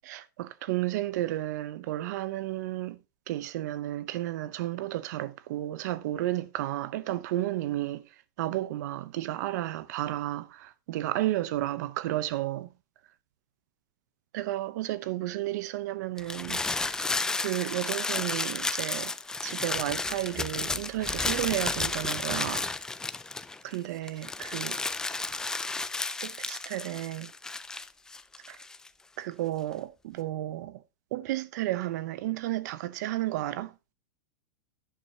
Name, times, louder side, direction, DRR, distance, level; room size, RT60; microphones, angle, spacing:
voice 1, 0.0-3.0 3.3-8.1 8.4-12.7 14.3-17.0 17.3-19.1 19.4-22.7 23.6-24.8 26.2-27.3 28.5-28.6 29.2-30.8 31.1-33.7, right 15 dB, 55° right, 0.8 m, -32 dB
sound 1, 16.2-23.8 24.1-28.9, left 3 dB, 5° left, 0.4 m, -32 dB
11.0 x 10.5 x 2.9 m
supercardioid pair, 155°, 11 cm